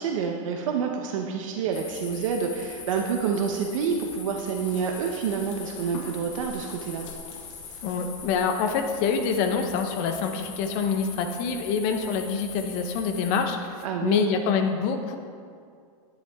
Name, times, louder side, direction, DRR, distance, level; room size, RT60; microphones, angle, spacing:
voice 1, 0.0-7.0 13.8-14.3, right 6 dB, 65° right, 2 dB, 1.0 m, -28 dB
sound 1, 1.7-13.4, left 5 dB, 60° left, 1.8 m, -41 dB
voice 2, 7.8-15.2, left 5 dB, 40° left, 5 dB, 0.9 m, -26 dB
10.5 x 9.9 x 3.6 m, 2.3 s
supercardioid pair, 160°, 18 cm